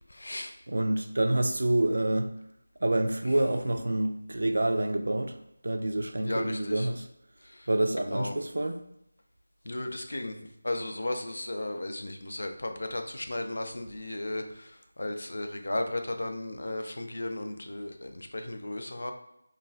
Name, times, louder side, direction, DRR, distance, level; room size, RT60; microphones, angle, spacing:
voice 1, 0.1-0.5 6.2-6.9 7.4-7.7 8.0-8.4 9.7-19.1, left 1 dB, 75° left, 0.4 m, -35 dB
voice 2, 0.7-2.3 2.8-5.4 5.6-7.1 7.7-8.8, right 1 dB, 70° right, 0.3 m, -27 dB
2.3 x 2.3 x 3.1 m
figure-of-eight pair, 170°, 0 cm